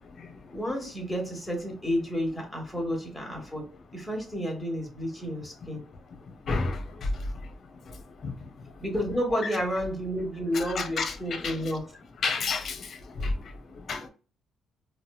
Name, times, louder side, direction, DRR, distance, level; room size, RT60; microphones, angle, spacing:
voice 1, 0.5-3.7 3.9-5.8 8.8-11.8, equal, 5° left, 1.3 m, -31 dB
voice 2, 6.5-6.8 8.2-8.3 9.4-9.6 10.5-11.6 12.2-12.9 13.2-13.3 13.9-14.0, left 4 dB, 55° left, 0.7 m, -30 dB
4.2 x 2.2 x 2.3 m
cardioid pair, 90°, 0 cm